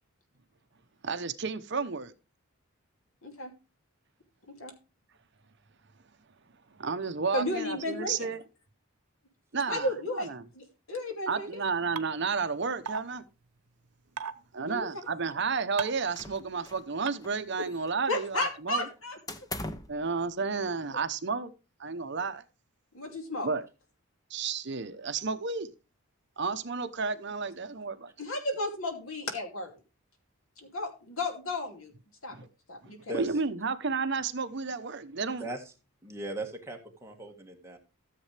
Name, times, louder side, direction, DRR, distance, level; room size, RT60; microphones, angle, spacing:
voice 1, 1.0-2.1 6.8-8.4 9.5-10.4 11.3-13.2 14.5-18.9 19.9-21.5 21.8-22.4 23.4-23.7 24.3-25.7 26.4-28.1 32.3-32.5 33.2-35.5, right 4 dB, 50° right, 0.8 m, -32 dB
voice 2, 3.2-3.5 4.6-4.7 7.3-8.3 9.7-10.3 10.5-11.5 14.7-14.9 18.1-19.2 22.9-23.5 28.2-29.7 30.6-31.9 32.2-32.3 32.7-33.0, left 2 dB, 70° left, 2.7 m, -33 dB
sound 1, 12.0-12.1 12.9-13.0 14.2-14.3 15.8-16.0 17.1-17.2 18.4-18.5, right 7 dB, 90° right, 0.8 m, -34 dB
sound 2, 16.2-16.9 17.2-18.1 19.3-20.0, left 2 dB, 15° left, 0.8 m, -40 dB
voice 3, 33.1-33.4 35.4-35.6 36.0-37.8, right 1 dB, 10° right, 1.6 m, -38 dB
14.0 x 7.5 x 3.3 m
head